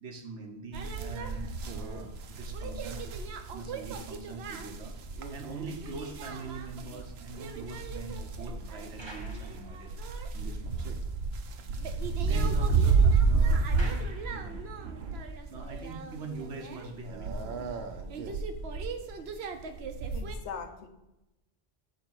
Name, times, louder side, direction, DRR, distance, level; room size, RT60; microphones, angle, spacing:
voice 1, 0.0-3.0 3.5-5.0 5.3-11.0 11.8-14.7 15.5-17.7, right 3 dB, 90° right, 2 dB, 1.3 m, -43 dB
sound 1, 0.7-20.3, right 4 dB, 70° right, 0.9 m, -31 dB
sound 2, 6.9-10.3 10.8-10.9 11.3-11.4 11.7-14.9, right 2 dB, 25° right, 0.9 m, -52 dB
voice 2, 20.1-20.9, left 6 dB, 85° left, 6 dB, 1.0 m, -41 dB
6.6 x 4.0 x 4.6 m, 0.96 s
omnidirectional pair, 1.2 m